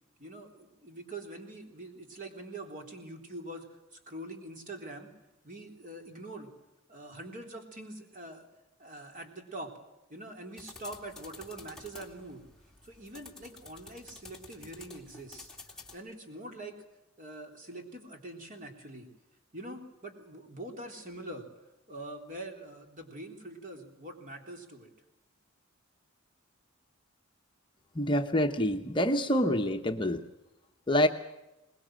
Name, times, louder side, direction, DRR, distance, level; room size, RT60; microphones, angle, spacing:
voice 1, 0.2-5.1 5.4-6.5 6.9-8.5 8.8-9.7 10.1-12.5 12.8-15.5 15.9-16.8 17.2-19.1 19.5-21.5 21.9-24.9, right 1 dB, 40° right, 3 dB, 3.5 m, -44 dB
sound 1, 10.6-16.0, left 3 dB, 5° left, 2.5 m, -50 dB
voice 2, 27.9-30.2 30.9-31.1, left 1 dB, 25° left, 4 dB, 0.9 m, -26 dB
22.5 x 20.5 x 7.7 m, 0.96 s
head